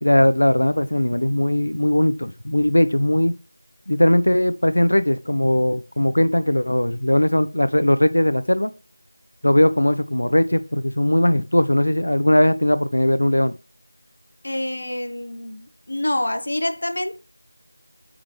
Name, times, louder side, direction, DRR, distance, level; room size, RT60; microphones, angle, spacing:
voice 1, 0.0-3.4 3.9-8.7 9.4-13.5, left 1 dB, 85° left, 0.4 m, -19 dB
voice 2, 14.4-17.2, left 1 dB, 40° left, 0.6 m, -26 dB
4.8 x 3.6 x 2.9 m
figure-of-eight pair, 180°, 0 cm